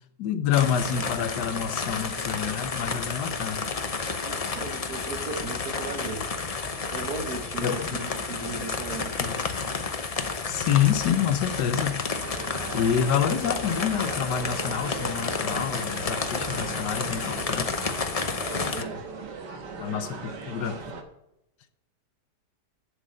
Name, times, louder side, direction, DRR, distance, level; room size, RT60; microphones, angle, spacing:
voice 1, 0.2-3.7 7.6-8.1 8.4-8.5 9.2-9.7 10.5-12.2 12.7-17.7 19.8-20.8, left 9 dB, 80° left, 1.4 m, -28 dB
sound 1, 0.5-18.8, left 4 dB, 45° left, 0.4 m, -31 dB
voice 2, 4.2-6.2 6.9-9.2 18.5-19.0, right 3 dB, 65° right, 1.8 m, -36 dB
sound 2, 12.2-21.0, right 4 dB, 85° right, 1.9 m, -38 dB
11.5 x 6.7 x 6.4 m
omnidirectional pair, 1.8 m